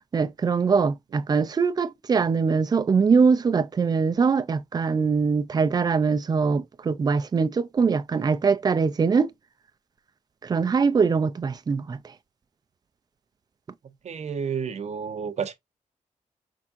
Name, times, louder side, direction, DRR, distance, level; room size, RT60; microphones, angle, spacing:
voice 1, 0.1-9.3 10.4-12.0, right 5 dB, 30° right, 0.5 m, -22 dB
voice 2, 14.0-15.5, right 6 dB, 55° right, 0.9 m, -30 dB
6.0 x 3.5 x 2.5 m
wide cardioid pair, 170°, 14 cm